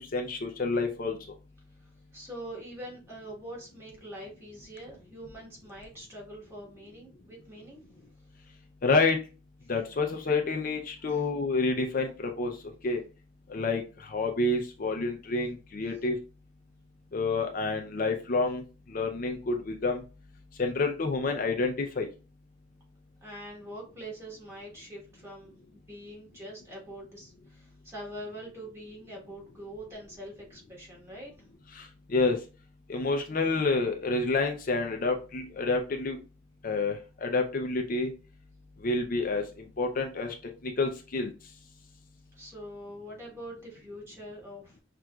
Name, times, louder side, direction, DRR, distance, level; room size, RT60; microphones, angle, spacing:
voice 1, 0.1-1.2 8.8-9.2 9.7-12.5 12.8-13.0 13.5-13.8 14.1-16.2 17.1-18.6 18.9-20.0 20.6-22.1 32.1-32.4 32.9-36.2 36.6-38.1 38.8-39.4 39.8-40.3 40.8-41.3, left 3 dB, 45° left, 3 dB, 0.5 m, -28 dB
voice 2, 1.8-7.8 11.0-11.2 15.9-16.0 23.2-31.3 42.3-44.8, equal, 15° right, -4 dB, 1.4 m, -44 dB
5.9 x 2.5 x 2.3 m, 0.33 s
head